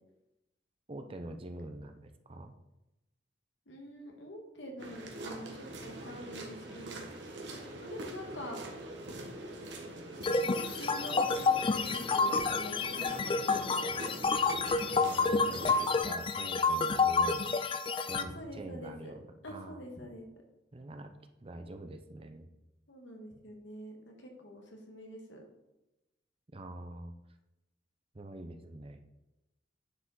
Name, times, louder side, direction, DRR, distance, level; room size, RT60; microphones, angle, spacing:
voice 1, 0.9-2.5 15.0-17.5 18.0-19.2 19.5-19.8 20.7-21.1 21.4-22.5 26.5-27.1 28.1-29.0, right 1 dB, 30° right, 7 dB, 0.6 m, -45 dB
voice 2, 3.7-7.1 7.8-8.6 10.5-14.4 18.2-19.1 19.4-20.3 22.9-25.4, equal, 75° left, 1 dB, 1.7 m, -46 dB
sound 1, 4.8-16.0, right 1 dB, 70° right, 1.5 m, -44 dB
sound 2, 10.2-18.2, left 4 dB, 30° left, 0.4 m, -29 dB
9.4 x 4.9 x 3.9 m, 0.95 s
head